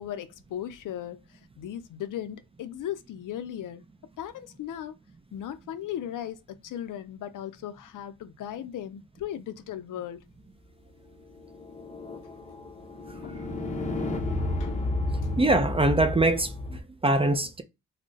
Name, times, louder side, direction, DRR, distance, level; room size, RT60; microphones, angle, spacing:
voice 1, 0.0-3.8 4.2-5.0 5.3-10.2 13.2-13.5 14.6-14.8, left 11 dB, 70° left, 0.5 m, -37 dB
sound 1, 11.2-16.8, left 2 dB, 20° left, 0.6 m, -32 dB
voice 2, 15.4-17.6, right 2 dB, 20° right, 0.4 m, -23 dB
2.4 x 2.1 x 3.7 m
cardioid pair, 90°, 33 cm